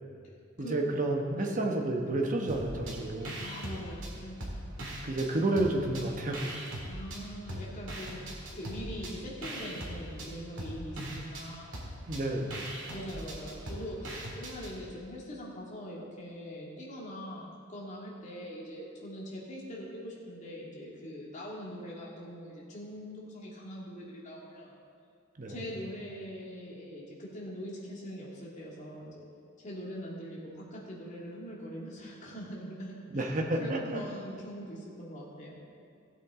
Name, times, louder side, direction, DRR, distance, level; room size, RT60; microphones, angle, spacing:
voice 1, 0.7-3.4 5.0-6.5 12.1-12.7 25.4-25.5 33.1-34.0, right 2 dB, 40° right, 2 dB, 1.1 m, -30 dB
sound 1, 2.5-3.0 3.2-5.3 5.6-7.2 7.5-14.7, right 1 dB, 60° right, 2.4 m, -40 dB
voice 2, 3.4-4.4 6.9-11.9 12.9-24.7 25.5-29.2 29.6-35.6, equal, 35° left, -5 dB, 2.3 m, -42 dB
16.5 x 8.1 x 3.7 m, 2.5 s
head